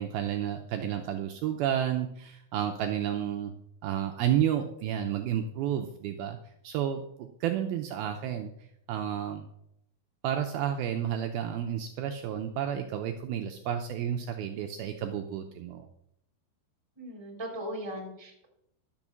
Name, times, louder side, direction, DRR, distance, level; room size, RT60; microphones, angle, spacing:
voice 1, 0.0-3.5 3.8-6.4 6.6-8.5 8.9-9.5 10.2-15.9, right 10 dB, 80° right, 5 dB, 2.3 m, -31 dB
voice 2, 17.0-18.5, equal, 10° right, 0 dB, 2.1 m, -38 dB
12.0 x 6.3 x 7.2 m, 0.75 s
omnidirectional pair, 4.9 m